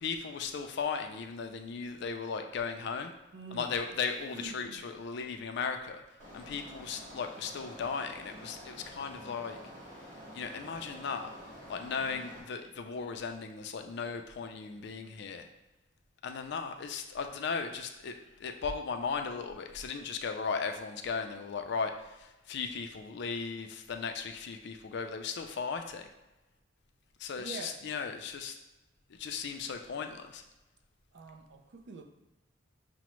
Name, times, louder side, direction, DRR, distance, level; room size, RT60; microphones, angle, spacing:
voice 1, 0.0-3.1 3.5-6.0 6.3-9.6 10.3-11.3 11.7-15.5 16.2-26.1 27.2-28.5 29.1-30.4, left 5 dB, 60° left, 6 dB, 0.4 m, -36 dB
voice 2, 3.3-3.7 4.3-4.8 27.4-27.8 31.1-32.0, right 4 dB, 60° right, 5 dB, 0.4 m, -45 dB
sound 1, 6.2-12.4, equal, 40° right, 1.1 m, -49 dB
5.9 x 2.1 x 3.0 m, 1.0 s
head